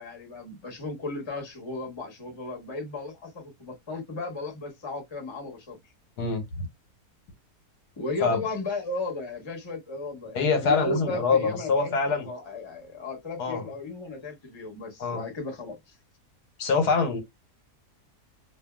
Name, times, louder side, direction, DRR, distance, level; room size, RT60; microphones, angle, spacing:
voice 1, 0.0-5.9 8.0-16.0, left 2 dB, 20° left, 0.9 m, -35 dB
voice 2, 6.2-6.7 8.2-8.4 10.3-12.3 13.4-13.6 15.0-15.2 16.6-17.2, left 4 dB, 80° left, 1.4 m, -24 dB
2.7 x 2.6 x 2.2 m
omnidirectional pair, 1.7 m